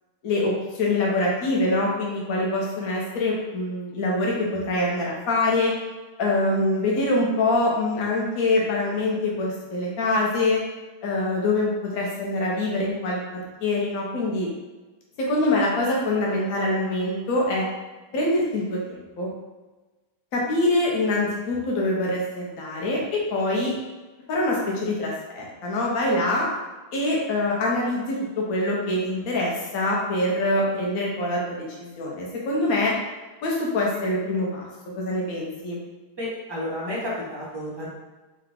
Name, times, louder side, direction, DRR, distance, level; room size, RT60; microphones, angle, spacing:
voice 1, 0.2-5.7 6.2-10.6 11.0-14.5 15.2-17.7 18.1-19.3 20.3-23.7 24.3-26.5 26.9-32.9 33.4-34.7 35.0-35.8, left 2 dB, 55° left, -3 dB, 1.1 m, -24 dB
voice 2, 36.2-37.9, left 1 dB, 25° right, -8 dB, 0.5 m, -31 dB
4.8 x 2.3 x 3.6 m, 1.2 s
omnidirectional pair, 2.3 m